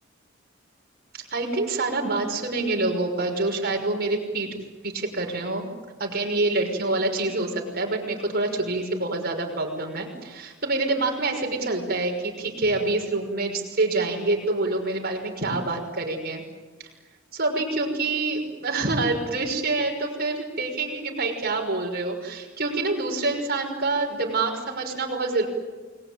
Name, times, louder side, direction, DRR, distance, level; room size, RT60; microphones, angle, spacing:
voice 1, 1.1-4.5 4.8-5.6 6.0-16.4 17.3-25.5, right 2 dB, 50° right, 2 dB, 6.1 m, -26 dB
29.5 x 22.0 x 9.1 m, 1.4 s
head